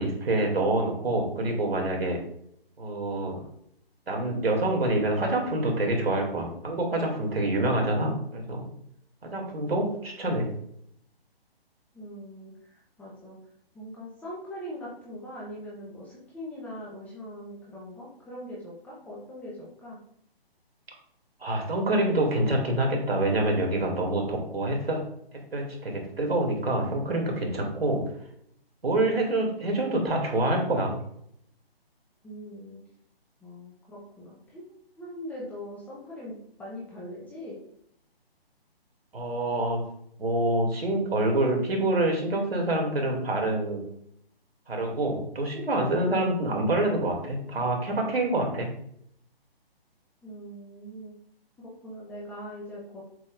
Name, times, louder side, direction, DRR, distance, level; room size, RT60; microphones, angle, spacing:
voice 1, 0.0-2.2 2.8-3.4 4.1-8.7 9.2-10.5 21.4-25.0 25.5-28.0 28.8-30.9 39.1-39.8 40.2-43.8 44.7-48.7, right 1 dB, 75° right, 1 dB, 2.7 m, -26 dB
voice 2, 11.9-13.4 13.7-20.0 32.2-32.8 33.4-34.6 35.0-37.6 50.2-51.1 51.6-53.0, equal, 5° left, -6 dB, 0.8 m, -41 dB
7.5 x 6.2 x 2.5 m, 0.69 s
figure-of-eight pair, 145°, 31 cm